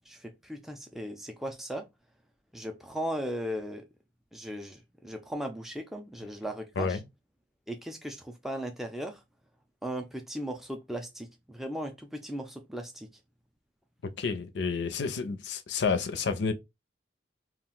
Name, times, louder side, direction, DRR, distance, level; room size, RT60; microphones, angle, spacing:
voice 1, 0.1-1.9 2.5-3.8 4.3-7.0 7.7-9.2 9.8-13.1, equal, ahead, 0.3 m, -37 dB
voice 2, 14.0-16.5, left 5 dB, 75° left, 0.5 m, -30 dB
2.4 x 2.1 x 3.7 m
head